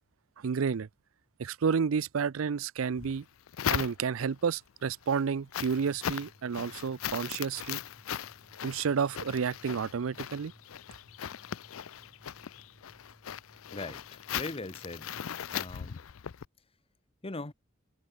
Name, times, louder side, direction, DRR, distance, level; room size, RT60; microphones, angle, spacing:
voice 1, 0.4-0.9 1.4-3.2 3.7-7.8 8.6-10.5, right 6 dB, 85° right, 0.5 m, -30 dB
sound 1, 3.0-4.4 4.9-16.5, left 9 dB, 85° left, 0.5 m, -38 dB
sound 2, 5.5-15.7, equal, 15° right, 3.4 m, -61 dB
voice 2, 13.7-15.1 15.5-16.0 17.2-17.5, left 2 dB, 30° left, 1.1 m, -40 dB
head